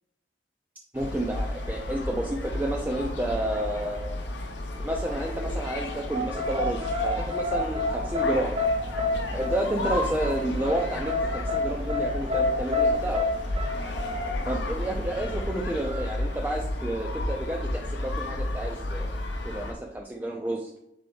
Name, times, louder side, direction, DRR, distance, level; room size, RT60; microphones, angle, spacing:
sound 1, 0.9-19.7, left 1 dB, 80° left, 0.7 m, -32 dB
voice 1, 0.9-4.1 4.8-8.6 9.3-13.3 14.5-19.1 19.4-20.7, right 1 dB, 10° right, 0 dB, 0.3 m, -30 dB
sound 2, 6.1-13.9, left 2 dB, 35° right, 0.8 m, -28 dB
3.7 x 3.4 x 3.8 m, 0.81 s
head